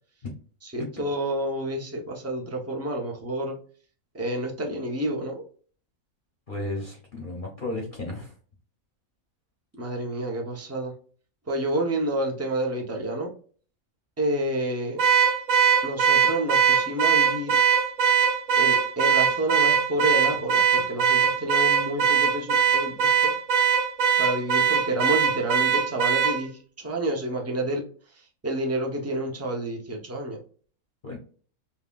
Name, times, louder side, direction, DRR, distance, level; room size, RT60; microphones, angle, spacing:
voice 1, 0.7-3.5 4.1-5.4 9.8-10.9 11.5-13.3 14.2-15.0 15.8-17.6 18.6-23.1 24.2-26.5 26.8-27.8 28.4-30.4, right 1 dB, 15° right, 1 dB, 0.5 m, -29 dB
voice 2, 6.5-8.3 31.0-31.2, left 2 dB, 45° left, 0 dB, 0.8 m, -33 dB
Car / Alarm, 15.0-26.4, right 8 dB, 85° right, 1.1 m, -21 dB
5.4 x 2.3 x 2.3 m, 0.43 s
omnidirectional pair, 1.4 m